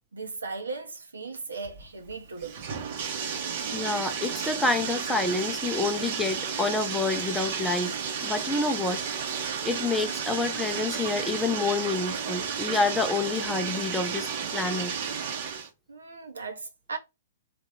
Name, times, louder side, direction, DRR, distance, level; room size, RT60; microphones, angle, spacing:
voice 1, 0.1-2.6 15.9-17.0, right 4 dB, 80° right, 0.8 m, -37 dB
Bathtub (filling or washing), 1.6-15.7, right 6 dB, 50° right, 0.9 m, -32 dB
voice 2, 3.7-8.0 8.2-9.0 9.6-14.9, left 3 dB, 5° left, 0.5 m, -28 dB
3.4 x 2.4 x 4.2 m
figure-of-eight pair, 115°, 0 cm